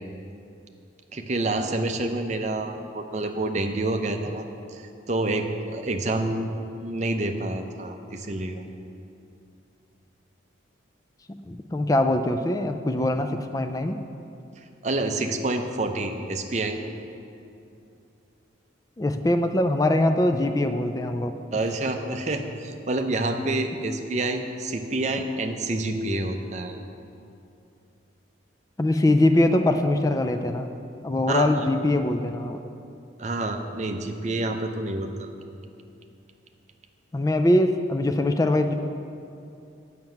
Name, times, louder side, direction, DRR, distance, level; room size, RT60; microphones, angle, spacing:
voice 1, 1.1-4.4 4.7-6.5 6.8-8.6 14.8-16.8 21.5-26.8 31.3-31.5 33.2-35.3, right 2 dB, 35° right, 5 dB, 0.6 m, -28 dB
voice 2, 11.3-14.0 19.0-21.4 28.8-30.7 31.0-32.6 37.1-38.7, left 1 dB, 20° left, 7 dB, 0.3 m, -22 dB
7.4 x 5.9 x 7.8 m, 2.7 s
head